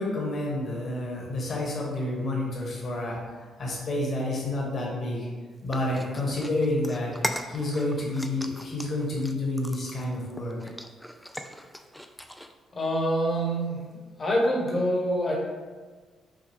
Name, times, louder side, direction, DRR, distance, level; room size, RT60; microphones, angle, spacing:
voice 1, 0.0-3.2 3.6-5.3 5.6-10.6, left 1 dB, 50° left, -3 dB, 1.4 m, -29 dB
sound 1, 5.7-12.5, equal, 5° left, 0.3 m, -39 dB
voice 2, 12.7-13.8 14.2-15.3, equal, 35° left, -2 dB, 1.2 m, -25 dB
5.8 x 2.3 x 3.4 m, 1.4 s
cardioid pair, 90°, 0 cm